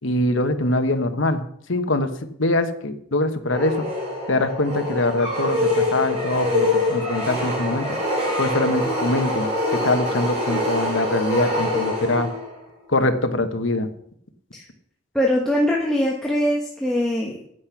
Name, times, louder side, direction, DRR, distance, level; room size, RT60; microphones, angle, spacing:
voice 1, 0.0-1.4 1.7-2.1 2.4-3.8 4.3-8.0 8.4-9.5 9.8-12.3 12.9-13.9, left 2 dB, 65° left, 8 dB, 1.1 m, -23 dB
sound 1, 3.5-12.6, left 1 dB, 30° right, 4.7 m, -24 dB
voice 2, 15.1-17.5, left 1 dB, 5° left, -2 dB, 1.2 m, -22 dB
10.0 x 9.6 x 5.9 m, 0.71 s
head